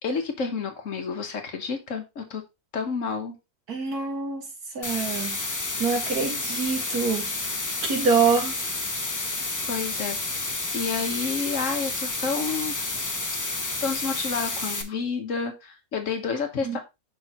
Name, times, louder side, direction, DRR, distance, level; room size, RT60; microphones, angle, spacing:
voice 1, 0.0-2.4 2.7-3.3 9.7-13.0 13.8-16.8, left 5 dB, 55° left, 1.4 m, -30 dB
voice 2, 3.7-4.4 4.7-5.4 5.8-7.5 7.8-8.6 16.6-16.8, right 5 dB, 75° right, 2.2 m, -25 dB
sound 1, 4.8-14.8, left 2 dB, 25° left, 0.4 m, -30 dB
6.2 x 5.7 x 2.9 m
omnidirectional pair, 1.6 m